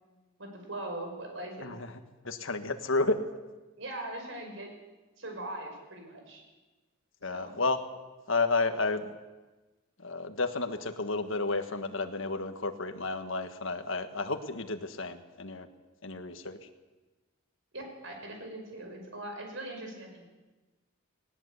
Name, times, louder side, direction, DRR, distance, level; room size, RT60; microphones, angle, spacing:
voice 1, 0.4-1.7 3.8-4.7 5.2-6.4 7.2-7.6 17.7-20.3, right 1 dB, 65° right, 3 dB, 5.7 m, -41 dB
voice 2, 2.2-3.2 7.2-7.8 8.3-9.2 10.0-15.7 16.0-16.6, left 3 dB, 65° left, 7 dB, 1.6 m, -31 dB
19.5 x 18.0 x 8.3 m, 1.2 s
head